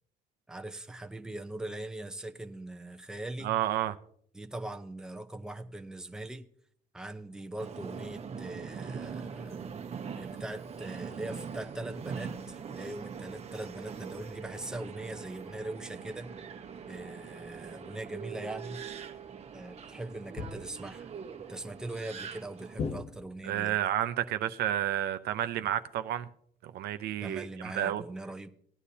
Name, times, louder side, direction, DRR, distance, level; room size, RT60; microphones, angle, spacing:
voice 1, 0.5-3.5 4.3-6.4 6.9-9.6 10.1-16.3 16.9-18.8 19.5-21.1 21.5-23.8 27.2-28.5, right 2 dB, 5° right, 0.7 m, -41 dB
voice 2, 3.4-4.0 23.4-26.3 26.6-28.0, right 12 dB, 70° right, 0.6 m, -31 dB
Subway metro underground, 7.6-22.8, right 6 dB, 40° right, 1.0 m, -42 dB
sound 1, 20.4-21.0 22.8-23.6, left 5 dB, 40° left, 0.7 m, -38 dB
17.0 x 9.9 x 2.8 m
cardioid pair, 110°, 17 cm